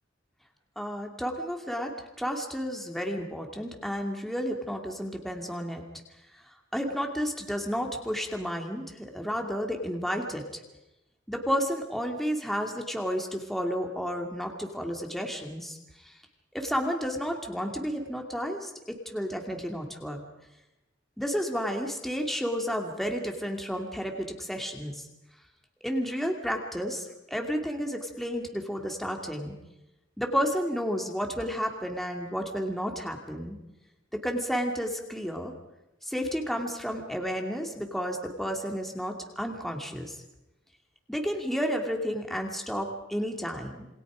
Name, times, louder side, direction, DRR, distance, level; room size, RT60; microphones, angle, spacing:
voice 1, 0.8-1.9 2.2-5.8 6.7-10.4 11.3-15.8 16.0-16.1 16.5-20.2 21.2-25.0 25.8-29.6 30.2-33.6 34.1-35.5 36.0-40.2 41.1-43.9, equal, ahead, 2 dB, 2.6 m, -31 dB
28.0 x 24.0 x 5.1 m, 0.93 s
head